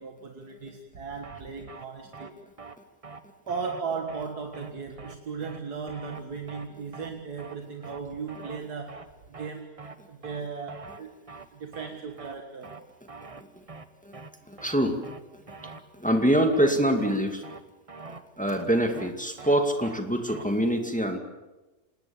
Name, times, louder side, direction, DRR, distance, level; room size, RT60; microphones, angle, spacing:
voice 1, 0.0-2.4 3.5-9.0 9.3-9.7 10.1-11.1 11.5-12.8, right 5 dB, 75° right, 3 dB, 2.2 m, -36 dB
sound 1, 1.2-1.4 1.7-1.9 2.1-2.3 2.6-2.8 3.0-3.2 3.5-3.8 4.1-4.3 4.5-4.7 5.0-5.2 5.4-5.6 5.9-6.2 6.5-6.7 6.9-7.1 7.4-7.6 7.8-8.0 8.3-8.6 8.9-9.1 9.3-9.5 9.8-10.0 10.2-10.4 10.7-11.0 11.3-11.5 11.7-11.9 12.2-12.4 12.6-12.8 13.1-13.4 13.7-13.9 14.1-14.3 14.6-14.8 15.0-15.2 15.5-15.8 16.1-16.3 16.5-16.7 17.0-17.2 17.4-17.6 17.9-18.2 18.5-18.7 18.9-19.1 19.4-19.6 19.8-20.0 20.3-20.4, right 4 dB, 25° right, 1.0 m, -44 dB
voice 2, 14.5-15.0 15.3-17.4 18.4-21.2, right 1 dB, 5° left, 5 dB, 2.1 m, -25 dB
27.0 x 19.5 x 7.1 m, 1.1 s
omnidirectional pair, 1.7 m